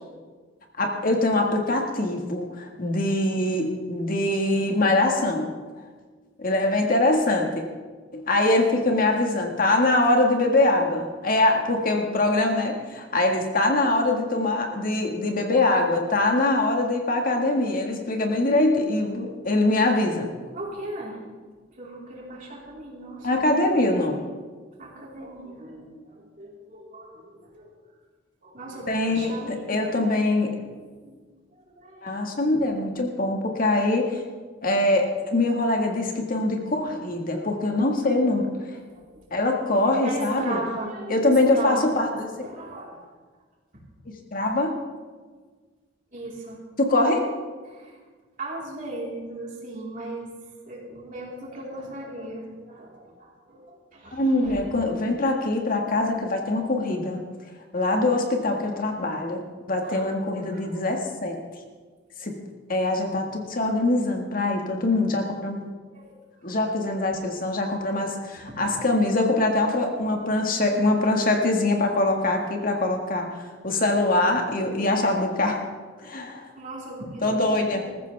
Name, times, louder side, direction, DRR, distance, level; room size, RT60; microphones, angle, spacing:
voice 1, 0.8-5.5 6.4-7.5 8.1-20.3 23.2-24.2 28.9-30.6 32.0-34.2 34.6-38.5 39.3-40.6 41.1-42.3 44.3-44.8 46.8-47.3 54.1-57.2 57.7-59.4 59.7-61.4 62.2-62.3 62.7-65.6 66.4-73.3 73.6-75.6 76.0-76.5 77.2-77.8, left 2 dB, 50° left, 2 dB, 1.8 m, -23 dB
voice 2, 20.5-21.2 21.8-23.5 24.8-27.7 28.4-30.1 30.7-31.2 31.5-32.2 38.9-39.2 40.0-42.0 42.4-43.0 46.1-46.6 47.7-48.0 48.4-50.3 50.7-54.6 59.8-60.8 65.9-66.1 68.5-68.6 76.5-77.8, right 2 dB, 45° right, -4 dB, 4.2 m, -38 dB
20.5 x 14.5 x 3.5 m, 1.5 s
head